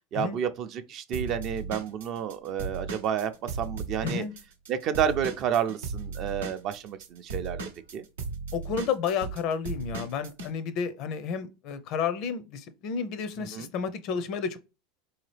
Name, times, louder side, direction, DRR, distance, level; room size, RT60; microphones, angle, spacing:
voice 1, 0.1-4.2 4.7-7.6 7.9-8.0 13.4-13.7, right 8 dB, 50° right, 0.4 m, -30 dB
Drum kit / Drum, 1.1-4.7 4.9-10.5, right 4 dB, 85° right, 0.7 m, -36 dB
voice 2, 4.0-4.3 8.5-14.6, left 6 dB, 55° left, 0.5 m, -31 dB
3.8 x 2.8 x 3.2 m
hypercardioid pair, 100°, 0 cm